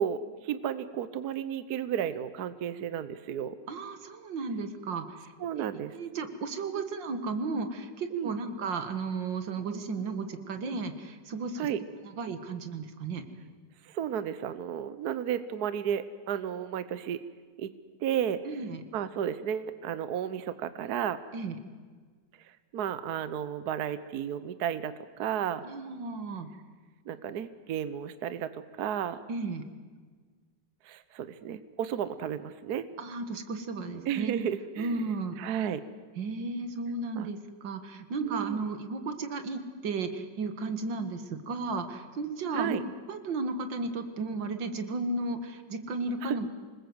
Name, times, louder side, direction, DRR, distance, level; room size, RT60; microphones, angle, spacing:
voice 1, 0.0-3.6 5.4-5.9 8.1-8.4 11.6-11.8 13.8-17.2 17.6-17.7 18.0-18.4 18.9-21.2 22.7-25.6 27.1-29.2 30.8-32.9 34.1-35.8 37.2-37.3 38.2-38.6 42.5-42.8 46.2-46.4, right 9 dB, 65° right, 13 dB, 1.3 m, -33 dB
voice 2, 3.7-5.2 5.6-5.7 5.9-11.7 12.0-13.2 18.5-18.8 21.3-21.6 25.6-26.5 29.3-29.6 33.0-34.4 34.8-35.4 36.2-42.8 43.1-46.5, right 3 dB, 85° right, 9 dB, 2.3 m, -34 dB
26.5 x 20.0 x 7.9 m, 1.5 s
omnidirectional pair, 1.9 m